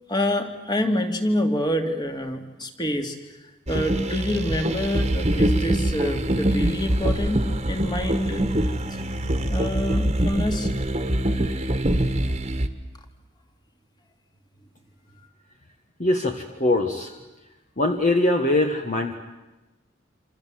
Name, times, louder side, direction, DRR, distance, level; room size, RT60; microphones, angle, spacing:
voice 1, 0.1-3.2 3.7-8.5 8.9-9.0 9.5-10.7, left 1 dB, 20° left, 4 dB, 2.6 m, -27 dB
sound 1, 3.7-12.7, right 1 dB, 30° right, 1.7 m, -24 dB
voice 2, 16.0-17.2 17.8-19.1, left 2 dB, 40° left, 4 dB, 1.6 m, -22 dB
27.5 x 27.0 x 7.7 m, 1.1 s
head